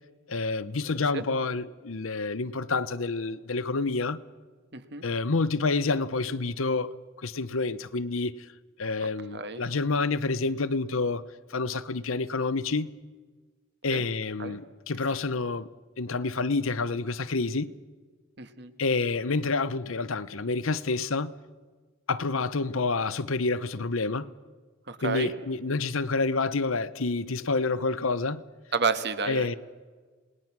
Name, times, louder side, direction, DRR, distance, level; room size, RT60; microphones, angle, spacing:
voice 1, 0.3-4.2 5.0-8.4 8.8-11.2 11.5-12.9 13.8-15.7 16.0-17.7 18.8-21.3 22.1-24.3 25.0-28.4 29.3-29.6, left 3 dB, 75° left, 0.9 m, -28 dB
voice 2, 4.7-5.0 9.3-9.6 13.9-14.0 14.4-14.6 18.4-18.7 24.9-25.3 28.7-29.5, right 5 dB, 55° right, 1.6 m, -30 dB
27.5 x 19.5 x 6.1 m
head